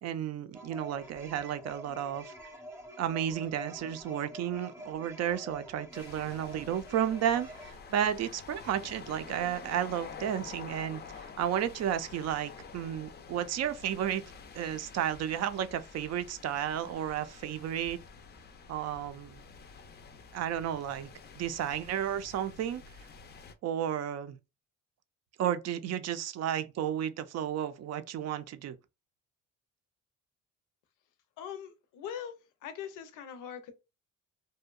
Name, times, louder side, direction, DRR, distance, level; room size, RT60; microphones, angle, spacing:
voice 1, 0.0-2.3 3.0-14.2 14.5-18.0 18.7-19.4 20.3-21.1 21.4-22.8 23.6-24.4 25.4-28.8, right 10 dB, 60° right, 0.4 m, -33 dB
sound 1, 0.5-7.7, equal, 10° right, 0.7 m, -47 dB
sound 2, 5.9-23.5, left 5 dB, 35° left, 0.4 m, -49 dB
voice 2, 31.4-32.3 32.6-33.7, left 8 dB, 85° left, 0.6 m, -41 dB
2.7 x 2.1 x 2.3 m
cardioid pair, 90°, 30 cm